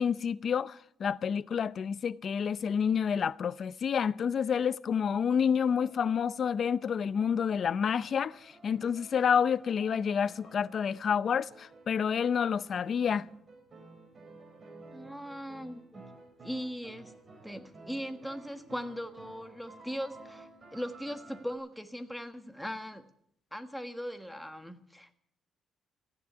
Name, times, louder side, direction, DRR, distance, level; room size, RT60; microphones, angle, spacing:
voice 1, 0.0-13.3, left 7 dB, 55° left, 0.6 m, -29 dB
sound 1, 5.3-21.6, right 3 dB, 40° right, 4.5 m, -54 dB
voice 2, 14.9-16.1 16.4-17.1 17.4-23.0 23.5-25.1, equal, ahead, 1.4 m, -39 dB
15.5 x 10.5 x 8.4 m
cardioid pair, 90°, 0 cm